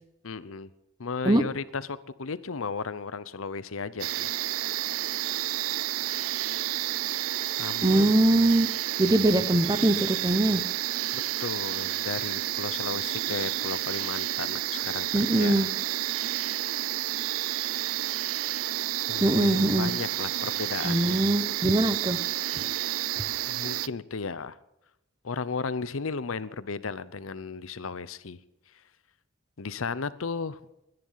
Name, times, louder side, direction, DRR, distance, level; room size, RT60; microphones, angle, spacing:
voice 1, 0.2-0.7 1.0-4.3 7.4-8.1 11.1-15.1 15.4-15.7 19.1-21.2 23.5-24.6 25.2-28.4 29.6-30.6, left 4 dB, 85° left, 16 dB, 0.8 m, -34 dB
sound 1, 4.0-23.9, right 14 dB, 90° right, 0.4 m, -30 dB
voice 2, 7.8-8.7 9.0-10.6 15.1-15.7 19.2-19.9 20.8-22.2 22.5-22.7 23.2-23.3, right 1 dB, 20° right, 11 dB, 0.8 m, -22 dB
21.5 x 10.5 x 5.7 m, 0.89 s
head